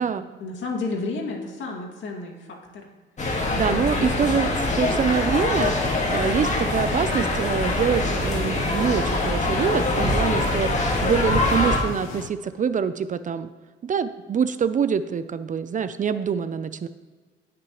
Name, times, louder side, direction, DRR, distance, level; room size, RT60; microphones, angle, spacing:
voice 1, 0.4-2.9 3.7-4.5, left 3 dB, 65° left, -1 dB, 2.4 m, -32 dB
sound 1, 3.2-11.8, left 2 dB, 35° left, 2.0 m, -24 dB
voice 2, 3.2-13.5 13.8-16.9, right 7 dB, 40° right, 13 dB, 0.5 m, -25 dB
sound 2, 5.8-12.3, left 8 dB, 90° left, 0.7 m, -38 dB
17.0 x 6.0 x 3.1 m, 1.4 s
cardioid pair, 90°, 20 cm